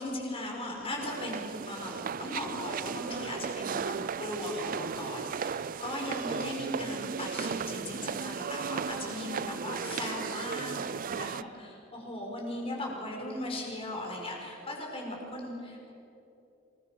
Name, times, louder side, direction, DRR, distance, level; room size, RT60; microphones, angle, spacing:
voice 1, 0.0-15.9, left 1 dB, 30° left, -1 dB, 5.4 m, -38 dB
sound 1, 1.0-11.4, right 6 dB, 45° right, 0.4 m, -36 dB
27.0 x 20.5 x 6.1 m, 2.9 s
head